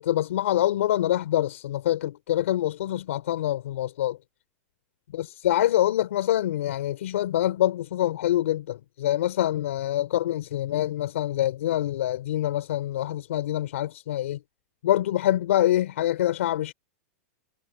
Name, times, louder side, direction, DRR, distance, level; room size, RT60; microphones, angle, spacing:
voice 1, 0.0-4.2 5.1-14.4 14.8-16.7, left 13 dB, 70° left, 3.7 m, -25 dB
supercardioid pair, 170°, 7 cm